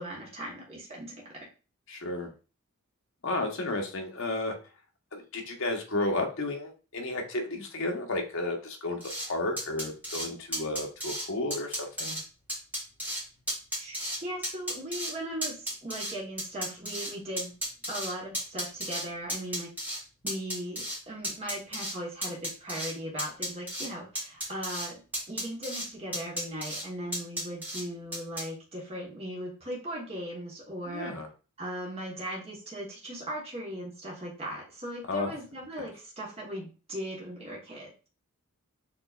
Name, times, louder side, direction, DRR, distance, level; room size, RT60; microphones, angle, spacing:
voice 1, 0.0-1.4 13.8-17.5 17.9-19.7 20.2-25.0 25.3-31.1 31.6-38.1, right 1 dB, 25° right, -3 dB, 1.2 m, -38 dB
voice 2, 1.9-2.3 3.2-4.5 5.1-12.2 30.9-31.3 35.1-35.3, left 2 dB, 60° left, 2 dB, 1.0 m, -32 dB
sound 1, 9.0-9.3 9.6-10.3 10.5-11.3 11.5-12.2 12.5-13.2 13.5-14.2 14.4-15.1 15.4-17.1 17.4-19.0 19.3-20.0 20.3-21.0 21.2-21.9 22.2-22.9 23.2-23.9 24.2-24.9 25.1-25.9 26.1-26.8 27.1-27.8 28.1-28.4, equal, 5° right, 1.7 m, -33 dB
6.9 x 3.1 x 2.4 m, 0.35 s
head